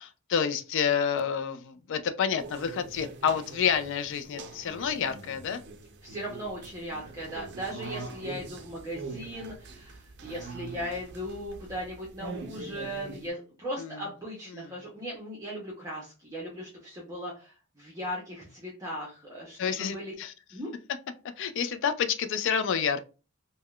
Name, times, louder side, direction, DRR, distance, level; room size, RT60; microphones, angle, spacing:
voice 1, 0.0-5.6 13.8-14.0 14.5-14.7 19.6-20.3 21.4-23.0, left 7 dB, 60° left, 0.3 m, -29 dB
sound 1, 2.4-13.3, right 3 dB, 55° right, 0.5 m, -43 dB
voice 2, 6.0-20.1 20.5-20.7, equal, 15° right, 0.7 m, -38 dB
3.5 x 2.1 x 2.3 m
head